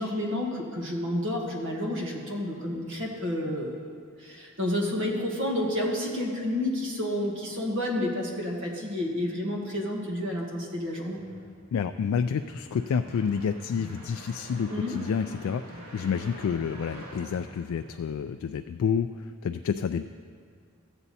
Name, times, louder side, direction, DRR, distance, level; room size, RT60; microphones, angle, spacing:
voice 1, 0.0-3.9 4.2-11.2 14.7-14.9, left 1 dB, 60° right, -1 dB, 1.6 m, -30 dB
sound 1, 10.8-18.4, right 1 dB, 80° right, 2.4 m, -46 dB
voice 2, 11.7-20.1, left 6 dB, 80° left, 8 dB, 0.3 m, -29 dB
13.5 x 8.0 x 4.2 m, 2.2 s
head